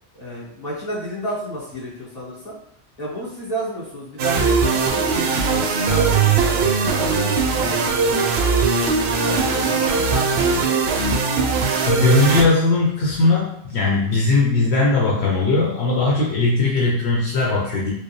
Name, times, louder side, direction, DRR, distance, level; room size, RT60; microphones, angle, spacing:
voice 1, 0.1-2.6 3.0-8.4 9.2-10.9, equal, 35° left, -8 dB, 1.7 m, -31 dB
sound 1, 4.2-12.4, right 5 dB, 70° right, 0.8 m, -20 dB
voice 2, 11.8-17.9, left 3 dB, 75° left, -4 dB, 1.0 m, -19 dB
4.8 x 2.0 x 3.1 m, 0.72 s
omnidirectional pair, 1.1 m